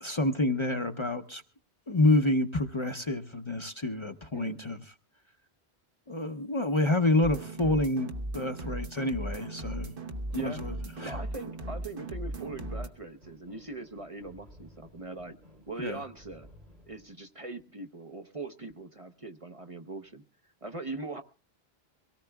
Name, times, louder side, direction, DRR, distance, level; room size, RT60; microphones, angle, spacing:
voice 1, 0.0-1.4 1.9-4.8 6.1-9.9 10.3-10.7 11.0-11.2 15.8-16.0, left 2 dB, 30° left, 6 dB, 0.8 m, -28 dB
sound 1, 7.2-12.9, right 1 dB, 60° right, 1.3 m, -37 dB
sound 2, 9.3-17.1, left 1 dB, 85° right, 3.9 m, -56 dB
voice 2, 10.3-10.6 11.0-15.4 15.7-16.5 16.9-20.2 20.6-21.2, right 3 dB, 35° right, 7 dB, 0.8 m, -41 dB
23.5 x 17.5 x 2.3 m, 0.34 s
omnidirectional pair, 1.0 m